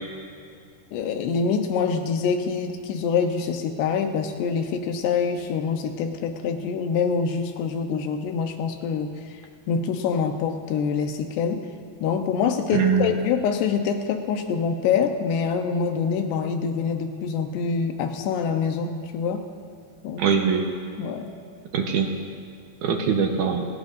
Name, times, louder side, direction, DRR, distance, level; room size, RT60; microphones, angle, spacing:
voice 1, 0.9-9.1 9.7-11.6 12.0-19.5 20.0-20.2 21.0-21.3, left 6 dB, 85° left, 5 dB, 3.2 m, -25 dB
voice 2, 12.7-13.2 20.2-20.6 21.7-22.1 22.8-23.7, right 6 dB, 65° right, 3 dB, 2.0 m, -22 dB
29.0 x 17.0 x 2.7 m, 2.3 s
omnidirectional pair, 4.7 m